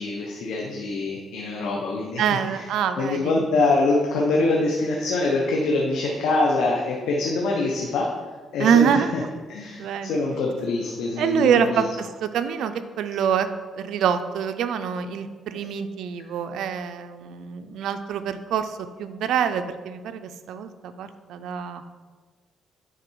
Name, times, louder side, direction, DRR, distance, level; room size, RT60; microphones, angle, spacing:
voice 1, 0.0-2.6 3.0-8.1 8.5-9.2 9.5-11.8, left 2 dB, 85° left, -1 dB, 0.9 m, -24 dB
voice 2, 2.2-3.3 8.6-9.1 9.8-10.2 11.2-11.9 12.2-13.5 13.7-21.8, right 8 dB, 80° right, 9 dB, 0.5 m, -25 dB
9.0 x 3.9 x 4.6 m, 1.4 s
cardioid pair, 90°, 0 cm